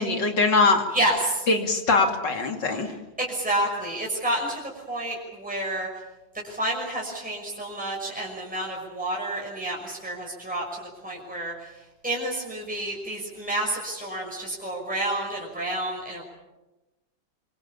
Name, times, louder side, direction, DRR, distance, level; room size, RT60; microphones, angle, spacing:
voice 1, 0.0-0.8 1.5-2.9, left 3 dB, 65° left, 4 dB, 3.4 m, -22 dB
voice 2, 0.9-1.4 3.2-4.6 4.9-5.9 6.4-11.7 12.0-16.2, right 1 dB, 5° right, -2 dB, 5.9 m, -29 dB
26.0 x 26.0 x 7.2 m, 1.0 s
omnidirectional pair, 2.1 m